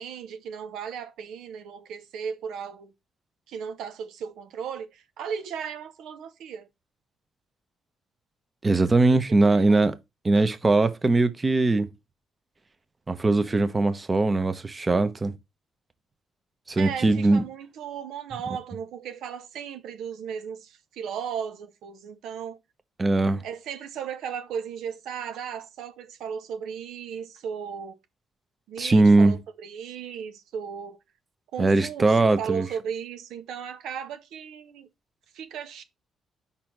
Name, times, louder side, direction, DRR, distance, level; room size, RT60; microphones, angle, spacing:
voice 1, 0.0-2.9 3.5-6.7 9.1-9.8 16.8-22.6 23.4-28.0 28.7-31.0 31.5-34.9 35.3-35.8, right 7 dB, 80° right, 0.9 m, -36 dB
voice 2, 8.6-9.9 10.2-11.9 13.1-15.3 16.7-17.4 23.0-23.4 28.8-29.4 31.6-32.7, right 2 dB, 25° right, 0.9 m, -21 dB
5.2 x 4.3 x 5.9 m
cardioid pair, 90°, 0 cm